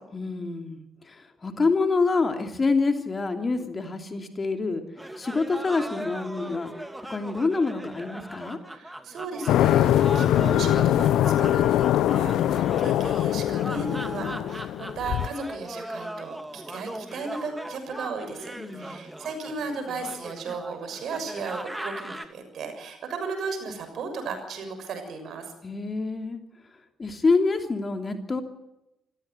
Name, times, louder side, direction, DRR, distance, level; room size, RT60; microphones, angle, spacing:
voice 1, 0.1-4.8 5.2-6.7 7.1-8.6 18.6-18.9 25.6-26.4 27.0-28.4, left 3 dB, 30° left, 6 dB, 3.0 m, -26 dB
sound 1, 5.0-22.3, right 1 dB, 10° right, 2.7 m, -39 dB
voice 2, 8.7-11.9 12.1-25.5, right 4 dB, 55° right, 7 dB, 6.4 m, -35 dB
sound 2, 9.5-15.3, left 12 dB, 60° left, 0.8 m, -22 dB
27.5 x 16.0 x 8.0 m, 0.91 s
figure-of-eight pair, 45°, 0 cm